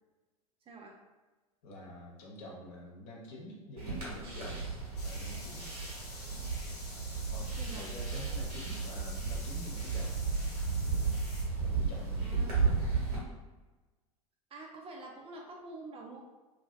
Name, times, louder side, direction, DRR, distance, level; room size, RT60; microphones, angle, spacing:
voice 1, 0.7-1.0 7.6-8.0 12.2-12.7 14.5-16.2, right 2 dB, 30° right, 0 dB, 0.6 m, -47 dB
voice 2, 1.6-4.7 5.0-5.7 7.3-10.2 10.7-11.2 11.6-12.9, left 1 dB, 55° left, -2 dB, 0.9 m, -47 dB
sound 1, 3.8-13.2, right 4 dB, 75° right, 1.4 m, -34 dB
sound 2, 5.0-11.4, left 2 dB, 85° left, 0.7 m, -49 dB
2.8 x 2.7 x 2.6 m, 1.2 s
figure-of-eight pair, 80°, 19 cm